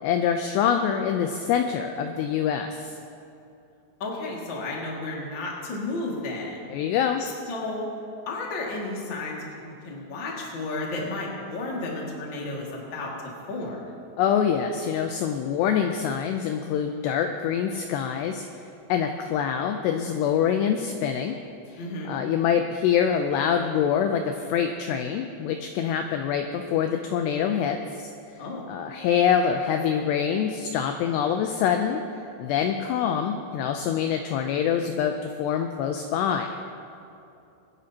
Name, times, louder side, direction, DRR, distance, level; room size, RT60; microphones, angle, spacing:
voice 1, 0.0-3.0 6.7-7.2 14.2-18.4 18.9-21.4 21.7-28.1 28.7-36.5, left 8 dB, 85° left, 5 dB, 2.4 m, -25 dB
voice 2, 4.0-6.7 7.2-7.8 8.2-9.4 9.8-13.1 13.5-13.8 21.8-22.2 28.4-28.6, left 2 dB, 45° left, -3 dB, 1.5 m, -32 dB
25.5 x 10.0 x 2.9 m, 2.7 s
omnidirectional pair, 5.5 m